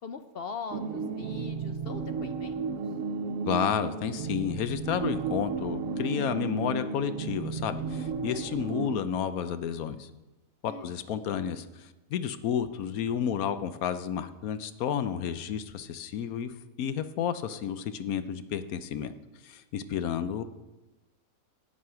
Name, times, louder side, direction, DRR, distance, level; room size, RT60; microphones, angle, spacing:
voice 1, 0.0-2.8 10.7-11.0, left 5 dB, 55° left, 8 dB, 0.7 m, -41 dB
sound 1, 0.7-9.0, right 5 dB, 75° right, 1.1 m, -33 dB
voice 2, 3.5-10.1 10.6-19.1 19.4-20.4, left 8 dB, 85° left, 11 dB, 1.2 m, -31 dB
12.5 x 8.7 x 5.7 m, 1.1 s
omnidirectional pair, 1.5 m